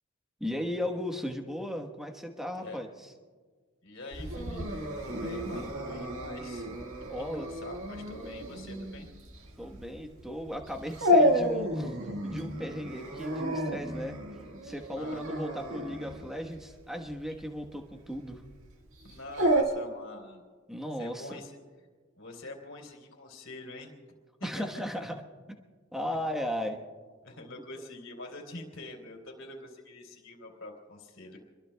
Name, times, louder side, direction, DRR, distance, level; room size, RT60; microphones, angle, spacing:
voice 1, 0.4-2.9 7.1-7.5 9.6-11.9 12.2-14.2 14.6-18.4 20.7-21.4 24.4-25.2 25.5-25.6 25.9-26.8, equal, ahead, 4 dB, 1.2 m, -36 dB
voice 2, 3.8-6.7 7.0-9.1 15.0-15.2 19.0-20.4 21.0-21.5 22.2-24.0 24.4-24.6 26.1-26.2 27.2-31.4, left 2 dB, 65° left, 0 dB, 3.5 m, -45 dB
Dog, 4.1-19.6, equal, 75° right, 1.7 m, -31 dB
27.5 x 22.0 x 2.3 m, 1.5 s
head